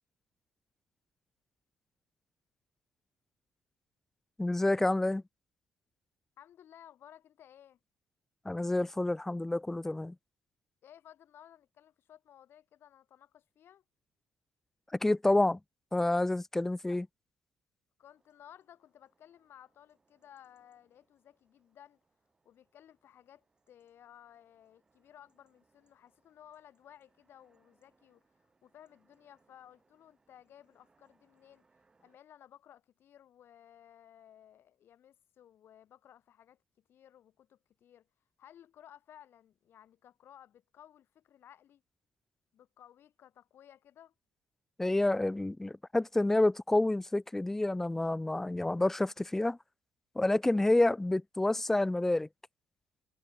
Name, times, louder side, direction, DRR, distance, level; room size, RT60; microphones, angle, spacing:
voice 1, 4.4-5.2 8.5-10.2 14.9-15.6 15.9-17.1 44.8-49.6 50.2-52.3, left 2 dB, 5° left, 0.3 m, -28 dB
voice 2, 6.4-7.8 10.8-13.8 16.9-17.0 18.0-22.0 22.4-31.6 32.0-38.1 38.4-41.8 42.5-44.1, left 10 dB, 55° left, 4.5 m, -57 dB
sound 1, 18.0-32.2, right 3 dB, 20° right, 8.0 m, -75 dB
cardioid pair, 145°, 5 cm